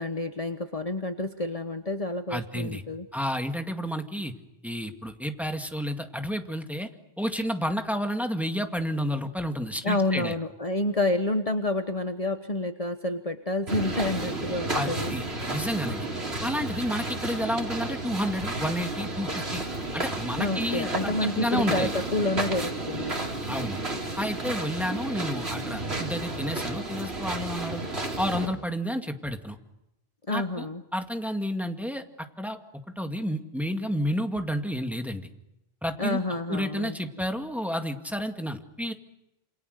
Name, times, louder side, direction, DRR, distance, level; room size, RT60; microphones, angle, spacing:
voice 1, 0.0-3.1 9.8-15.1 20.4-23.2 30.3-30.8 36.0-37.0, left 2 dB, 35° left, 7 dB, 1.2 m, -29 dB
voice 2, 2.3-2.8 3.1-4.3 4.6-6.9 7.2-10.4 14.7-16.1 16.4-19.6 19.9-21.9 23.4-23.8 24.2-27.8 28.2-29.6 30.3-30.7 30.9-32.6 33.0-35.3 35.8-36.2 36.5-38.9, equal, ahead, 5 dB, 2.1 m, -30 dB
sound 1, 13.7-28.5, right 2 dB, 80° right, 4.2 m, -32 dB
28.0 x 27.5 x 6.7 m, 0.89 s
omnidirectional pair, 1.1 m